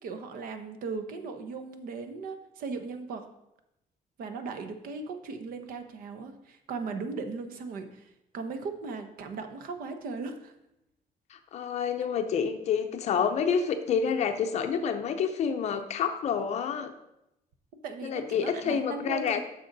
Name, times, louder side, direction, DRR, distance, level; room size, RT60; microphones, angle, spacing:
voice 1, 0.0-3.3 4.2-10.5 17.8-19.4, right 4 dB, 75° right, 8 dB, 1.0 m, -37 dB
voice 2, 11.3-16.9 18.0-19.4, left 7 dB, 50° left, 6 dB, 0.6 m, -28 dB
10.0 x 6.7 x 4.0 m, 0.87 s
cardioid pair, 175°, 15 cm